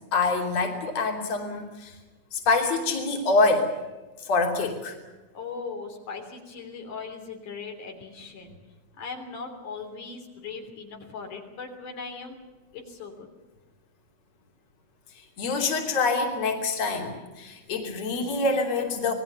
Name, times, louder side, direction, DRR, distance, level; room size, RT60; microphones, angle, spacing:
voice 1, 0.1-1.9 2.3-3.7 4.2-5.0 15.4-19.1, left 3 dB, 55° left, 2 dB, 4.3 m, -25 dB
voice 2, 5.3-8.6 9.0-12.4 12.7-13.3, left 5 dB, 85° left, 3 dB, 4.9 m, -39 dB
27.5 x 20.5 x 7.0 m, 1.2 s
omnidirectional pair, 3.5 m